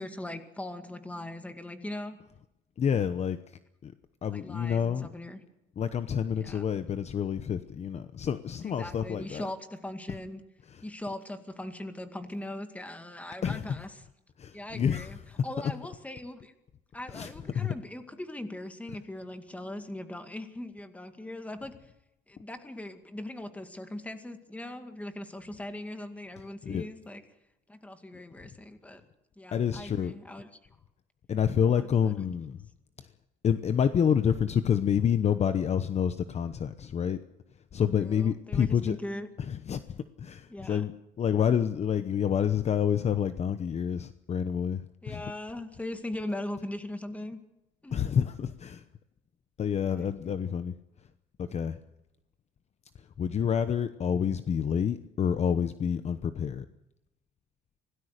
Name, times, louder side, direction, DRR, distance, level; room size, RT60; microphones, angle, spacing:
voice 1, 0.0-2.2 4.3-5.4 6.4-6.6 8.8-10.4 10.8-13.9 14.5-15.2 15.4-16.5 16.9-21.9 22.3-27.2 27.7-29.0 29.4-30.5 31.8-32.1 38.0-39.3 40.5-40.8 45.0-47.4 47.8-48.0 49.9-50.1, left 1 dB, 5° left, 8 dB, 2.1 m, -40 dB
voice 2, 2.8-3.9 4.2-5.1 5.8-9.5 10.7-10.8 13.4-13.8 14.4-15.4 17.1-17.7 26.6-26.9 29.5-30.1 31.3-32.6 33.0-33.1 33.4-37.2 37.7-39.0 39.4-40.9 41.2-45.2 47.9-48.9 49.6-51.1 51.4-51.8 52.9-56.7, left 8 dB, 35° left, 12 dB, 0.9 m, -28 dB
26.0 x 18.0 x 6.6 m, 0.90 s
cardioid pair, 145°, 19 cm